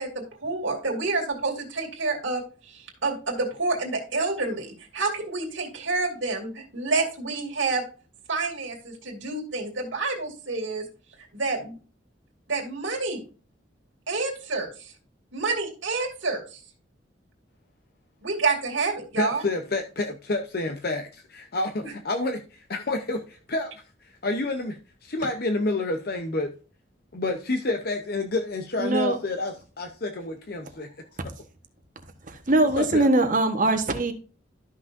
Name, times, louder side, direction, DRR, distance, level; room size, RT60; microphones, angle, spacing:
voice 1, 0.0-7.8 8.3-10.8 11.3-11.8 12.5-13.2 14.1-14.9 15.3-16.6 18.2-19.4 21.8-21.9, right 3 dB, 85° right, 2.5 m, -28 dB
voice 2, 19.2-23.7 24.0-26.5 27.1-31.3 32.8-33.1, left 2 dB, 55° left, 0.7 m, -29 dB
voice 3, 28.8-29.2 32.3-34.1, right 2 dB, 45° right, 1.2 m, -22 dB
13.0 x 6.0 x 2.6 m
head